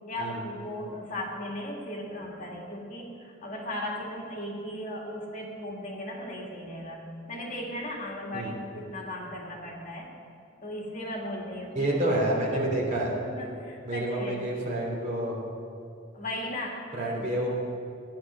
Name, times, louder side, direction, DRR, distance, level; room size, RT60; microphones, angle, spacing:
voice 1, 0.1-10.1 10.6-11.9 12.5-12.7 13.2-14.5 16.1-17.3, left 1 dB, 40° left, -1 dB, 2.1 m, -37 dB
voice 2, 11.7-13.1 13.8-15.4 16.9-17.5, right 1 dB, 40° right, -3 dB, 3.2 m, -28 dB
15.5 x 10.0 x 6.2 m, 2.4 s
head